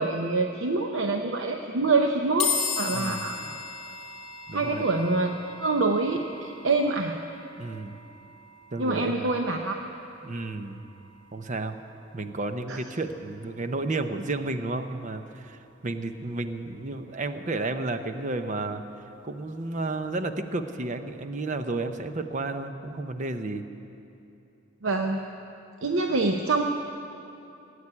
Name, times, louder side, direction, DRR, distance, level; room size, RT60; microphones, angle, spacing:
voice 1, 0.0-3.4 4.5-7.2 8.8-9.8 12.7-12.8 24.8-25.2 25.8-26.6, right 3 dB, 80° right, 3 dB, 0.8 m, -26 dB
sound 1, 2.4-15.7, left 5 dB, 30° left, 4.1 m, -38 dB
voice 2, 2.9-3.6 4.5-4.9 7.6-8.0 8.7-9.3 10.2-10.8 11.3-11.8 12.1-18.8 19.2-23.7, right 2 dB, 40° right, 8 dB, 0.8 m, -32 dB
17.5 x 8.4 x 9.8 m, 2.8 s
head